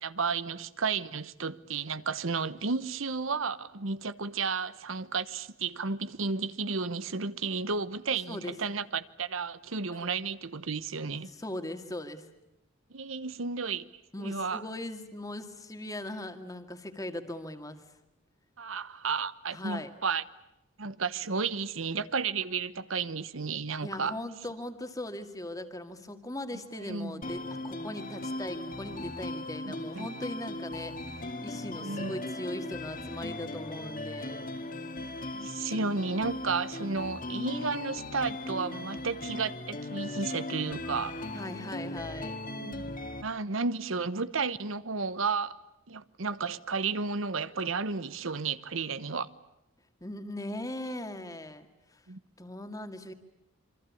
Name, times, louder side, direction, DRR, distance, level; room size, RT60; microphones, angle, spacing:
voice 1, 0.0-11.3 12.9-13.9 14.2-14.6 18.6-20.2 20.8-24.2 26.8-27.2 29.6-30.1 31.8-32.1 35.3-41.2 42.6-42.8 43.2-45.6 45.9-49.3 52.1-52.2, right 4 dB, 85° right, 1.1 m, -32 dB
voice 2, 11.3-12.3 14.1-17.9 19.5-19.9 23.8-34.5 41.3-42.5 50.0-51.7 51.9-52.0 52.4-53.1, left 1 dB, 20° left, 2.1 m, -39 dB
sound 1, 27.2-43.2, left 2 dB, 45° left, 2.2 m, -38 dB
27.5 x 24.5 x 8.5 m
head